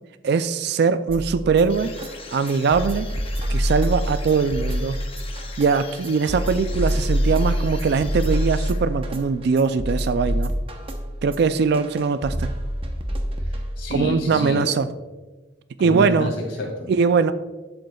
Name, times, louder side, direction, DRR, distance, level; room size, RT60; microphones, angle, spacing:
voice 1, 0.2-1.9 2.3-3.1 3.5-5.0 5.6-10.5 11.2-12.5 13.9-14.9 15.8-16.3 16.9-17.3, right 5 dB, 55° right, 12 dB, 0.3 m, -21 dB
sound 1, 1.1-14.1, equal, 30° right, 0.8 m, -26 dB
sound 2, 1.7-9.2, left 5 dB, 30° left, 0.7 m, -42 dB
voice 2, 13.4-14.8 15.8-16.9, left 1 dB, 70° left, 1 dB, 2.2 m, -29 dB
11.5 x 7.8 x 2.3 m, 1.2 s
head